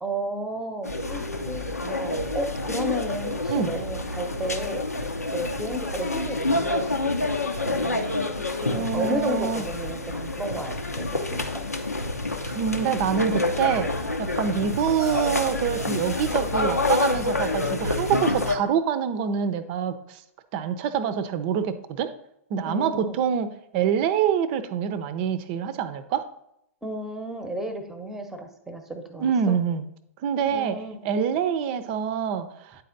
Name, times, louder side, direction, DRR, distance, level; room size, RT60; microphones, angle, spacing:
voice 1, 0.0-4.8 5.3-7.3 7.6-8.1 8.5-11.5 22.7-23.2 26.8-29.6 30.5-31.0, right 1 dB, 5° right, 6 dB, 0.9 m, -33 dB
sound 1, 0.8-18.6, left 2 dB, 90° left, 0.7 m, -28 dB
voice 2, 8.7-9.6 12.4-13.9 14.2-20.2 20.5-22.1 22.5-23.5 23.7-26.3 29.2-29.9 30.2-32.8, right 8 dB, 40° right, 12 dB, 0.6 m, -26 dB
9.1 x 4.2 x 3.9 m, 0.78 s
figure-of-eight pair, 105°, 8 cm